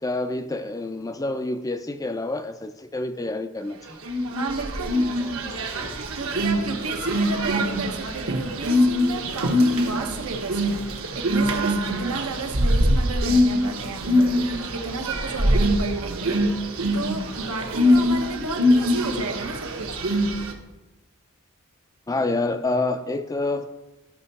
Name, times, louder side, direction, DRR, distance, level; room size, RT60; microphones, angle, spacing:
voice 1, 0.0-4.0 22.1-23.7, left 2 dB, 15° left, 9 dB, 0.4 m, -27 dB
sound 1, 4.0-20.5, equal, 65° right, 1.1 m, -23 dB
voice 2, 4.3-5.0 6.1-16.4 16.9-20.0, right 3 dB, 85° right, 3 dB, 1.2 m, -32 dB
13.5 x 5.5 x 4.1 m, 1.1 s
head